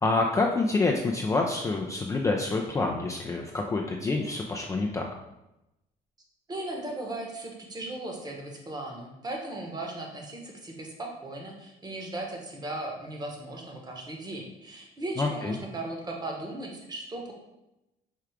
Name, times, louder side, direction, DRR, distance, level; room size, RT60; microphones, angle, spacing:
voice 1, 0.0-5.1 15.2-15.6, left 3 dB, 20° left, 0 dB, 0.4 m, -27 dB
voice 2, 6.5-17.3, right 2 dB, 25° right, 1 dB, 1.0 m, -37 dB
4.5 x 2.4 x 4.8 m, 0.93 s
cardioid pair, 110°, 17 cm